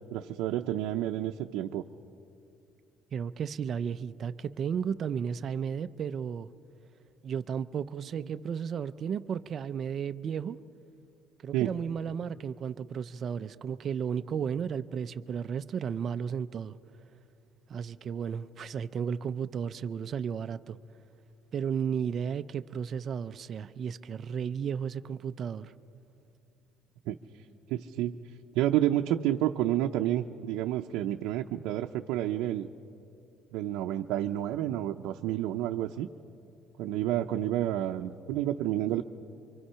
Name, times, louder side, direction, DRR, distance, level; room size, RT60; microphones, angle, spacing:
voice 1, 0.1-1.8 11.5-11.7 27.1-27.2 27.7-28.2 28.6-32.7 33.5-36.1 36.8-39.0, right 12 dB, 80° right, 4 dB, 0.6 m, -29 dB
voice 2, 3.1-6.5 7.2-10.6 11.4-16.8 17.7-20.8 21.5-25.7, right 7 dB, 35° right, 11 dB, 0.5 m, -33 dB
26.5 x 24.5 x 5.7 m, 2.7 s
cardioid pair, 170°, 0 cm